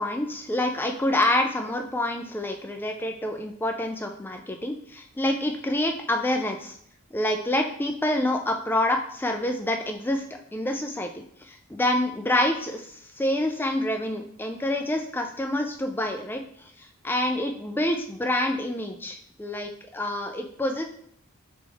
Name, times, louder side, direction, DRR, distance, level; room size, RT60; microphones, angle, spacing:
voice 1, 0.0-6.8 7.1-11.1 11.4-20.8, left 1 dB, 10° left, 4 dB, 0.3 m, -27 dB
3.4 x 3.0 x 3.4 m, 0.67 s
head